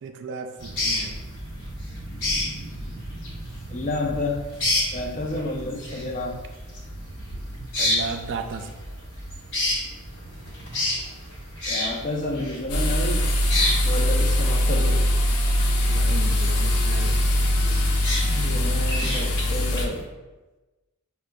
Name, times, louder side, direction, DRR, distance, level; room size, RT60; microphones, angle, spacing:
voice 1, 0.0-1.1 7.8-8.7 15.9-17.2, right 4 dB, 55° right, 6 dB, 0.3 m, -34 dB
sound 1, 0.6-20.0, left 1 dB, 55° left, 1.2 m, -31 dB
voice 2, 3.7-4.4 4.9-6.4 11.7-13.3 13.8-15.0 18.2-20.0, left 2 dB, 35° left, 0 dB, 0.5 m, -30 dB
sound 2, 12.7-19.9, left 1 dB, 90° left, 0.5 m, -22 dB
6.4 x 2.1 x 2.3 m, 1.2 s
head